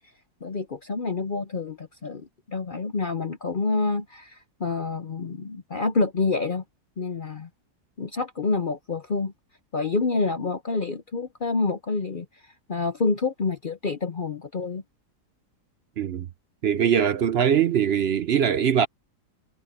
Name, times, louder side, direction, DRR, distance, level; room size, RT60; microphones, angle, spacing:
voice 1, 0.4-6.6 7.0-7.5 8.0-9.3 9.7-12.3 12.7-14.8, left 3 dB, 45° left, 0.7 m, -27 dB
voice 2, 16.6-18.9, right 8 dB, 60° right, 0.6 m, -22 dB
omnidirectional pair, 1.7 m